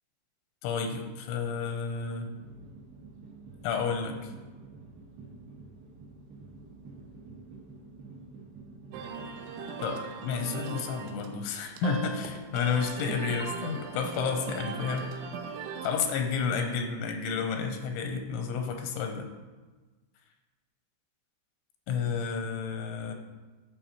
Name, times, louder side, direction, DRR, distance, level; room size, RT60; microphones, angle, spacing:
voice 1, 0.6-2.3 3.6-4.3 9.8-15.1 15.8-19.3 21.9-23.1, left 5 dB, 90° left, 5 dB, 3.0 m, -31 dB
sound 1, 2.2-9.4, right 3 dB, 70° right, 3.0 m, -49 dB
sound 2, 8.9-16.2, right 6 dB, 85° right, 2.4 m, -39 dB
11.5 x 4.9 x 2.9 m, 1.3 s
omnidirectional pair, 5.4 m